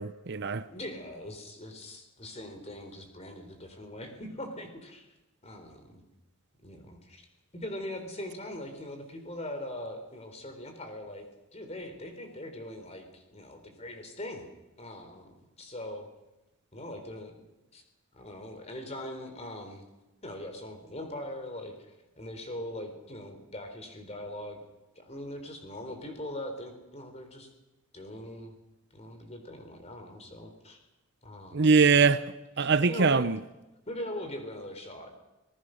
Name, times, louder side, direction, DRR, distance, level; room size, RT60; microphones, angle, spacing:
voice 1, 0.0-0.7 31.5-32.3 32.6-33.4, right 5 dB, 50° right, 0.7 m, -22 dB
voice 2, 0.7-5.1 5.4-6.0 6.6-7.2 7.5-11.3 11.5-14.5 14.8-16.1 16.7-17.3 17.7-17.8 18.1-19.8 20.2-24.6 25.0-27.5 27.9-28.6 28.9-30.9 31.2-31.9 32.6-33.3 33.9-35.2, left 1 dB, 30° left, 3.9 m, -41 dB
26.5 x 19.0 x 6.5 m
head